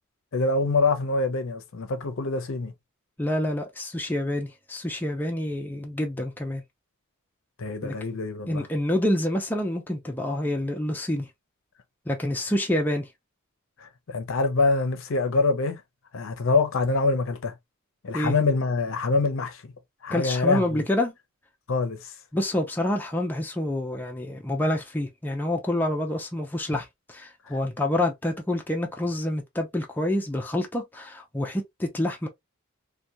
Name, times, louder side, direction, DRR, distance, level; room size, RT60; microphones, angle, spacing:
voice 1, 0.3-2.7 7.6-8.7 13.8-15.8 16.1-17.5 18.0-19.6 20.0-20.8 21.7-22.1, left 3 dB, 60° left, 0.6 m, -25 dB
voice 2, 3.2-6.6 7.8-7.9 8.5-11.3 12.1-13.1 18.1-18.3 20.1-21.1 22.3-32.3, left 1 dB, 10° left, 0.4 m, -27 dB
2.8 x 2.2 x 2.2 m
head